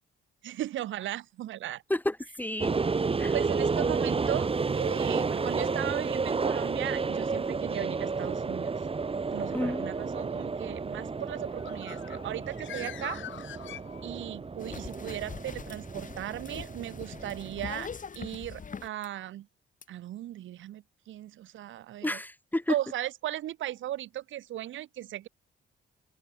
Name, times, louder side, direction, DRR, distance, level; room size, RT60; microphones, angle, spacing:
voice 1, 0.4-1.8 3.3-8.7 9.3-13.2 14.0-19.5 19.9-22.2 22.7-25.3, right 13 dB, 75° right, 1.2 m, -37 dB
voice 2, 1.9-2.8 3.2-3.3 9.5-9.9 22.0-22.7, left 1 dB, 10° left, 1.1 m, -30 dB
sound 1, 2.6-17.8, right 4 dB, 30° right, 2.1 m, -31 dB
Bird, 11.4-14.5, left 11 dB, 75° left, 7.2 m, -44 dB
sound 2, 14.6-19.1 19.8-19.9, left 6 dB, 40° left, 6.9 m, -42 dB
cardioid pair, 90°, 20 cm